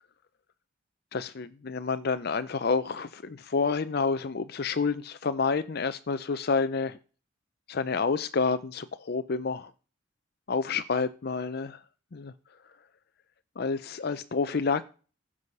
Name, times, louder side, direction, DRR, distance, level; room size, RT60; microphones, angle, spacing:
voice 1, 1.1-7.0 7.7-9.7 10.5-11.8 12.1-12.3 13.6-14.8, left 4 dB, 50° left, 12 dB, 0.5 m, -29 dB
15.0 x 6.3 x 5.3 m, 0.38 s
head